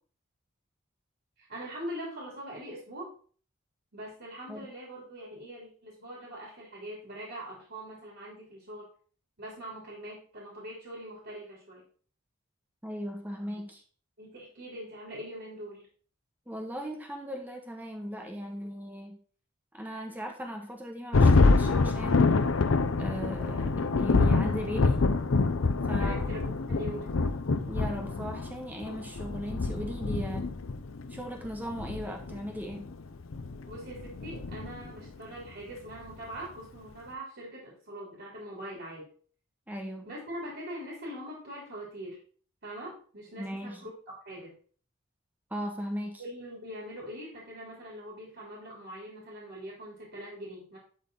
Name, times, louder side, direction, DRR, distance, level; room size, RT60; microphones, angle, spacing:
voice 1, 1.4-3.1 3.9-8.9 9.4-11.8 14.2-15.9 26.0-27.2 33.7-39.1 40.0-42.2 42.6-44.6 46.2-50.8, equal, 60° right, -4 dB, 3.2 m, -42 dB
voice 2, 12.8-13.8 16.5-19.2 19.7-22.4 23.0-25.1 25.9-26.3 27.7-30.5 31.1-32.9 39.7-40.1 43.4-43.8 45.5-46.2, equal, 10° right, 2 dB, 1.3 m, -38 dB
Thunder, 21.1-35.1, left 3 dB, 70° left, 0.6 m, -26 dB
11.5 x 4.0 x 3.8 m, 0.43 s
head